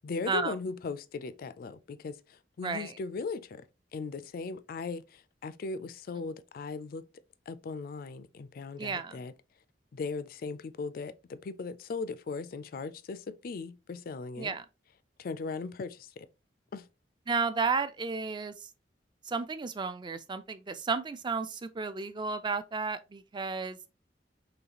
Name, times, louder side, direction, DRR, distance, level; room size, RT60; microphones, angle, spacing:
voice 1, 0.0-3.6 3.9-7.0 7.5-9.3 9.9-14.6 15.2-16.3 16.7-16.9, left 4 dB, 55° left, 0.4 m, -38 dB
voice 2, 2.6-2.9 8.8-9.2 14.4-14.6 17.3-18.5 19.3-23.8, right 4 dB, 25° right, 0.4 m, -32 dB
4.0 x 3.1 x 2.8 m
head